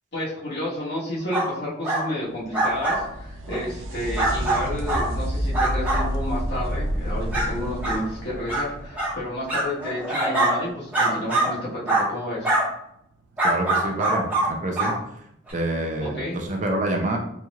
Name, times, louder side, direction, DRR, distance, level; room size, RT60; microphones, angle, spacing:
voice 1, 0.1-12.6 16.0-16.4, left 1 dB, 55° left, -7 dB, 1.5 m, -31 dB
sound 1, 1.3-1.5 1.8-2.0 2.5-3.0 3.5-3.6 4.2-5.1 5.5-6.0 6.6-6.7 7.3-7.5 7.8-8.0 8.5-8.6 8.9-9.1 9.5-10.5 10.9-11.5 11.9-12.0 12.4-12.6 13.4-14.5 14.7-14.9 15.5-15.6, right 2 dB, 10° right, 1.1 m, -23 dB
sound 2, 2.4-10.0 13.4-13.5 14.5-14.6, equal, 85° right, 0.5 m, -30 dB
voice 2, 13.4-14.9 15.5-17.2, right 1 dB, 40° right, 2 dB, 0.5 m, -27 dB
4.1 x 3.0 x 2.4 m, 0.75 s
head